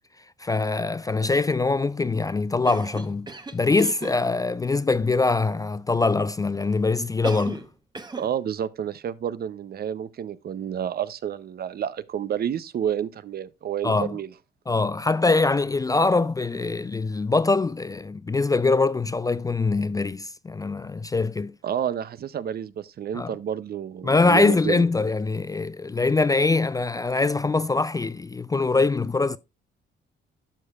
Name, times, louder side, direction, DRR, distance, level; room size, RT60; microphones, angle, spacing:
voice 1, 0.4-7.6 13.8-14.1 14.7-21.5 23.1-23.3 24.0-29.4, left 3 dB, 20° left, 0.3 m, -23 dB
Cough, 2.6-4.2 7.2-7.7 7.9-8.3, right 3 dB, 20° right, 0.9 m, -35 dB
voice 2, 8.2-14.3 21.6-24.8, right 9 dB, 50° right, 0.6 m, -30 dB
12.0 x 6.4 x 2.4 m
cardioid pair, 90°, 20 cm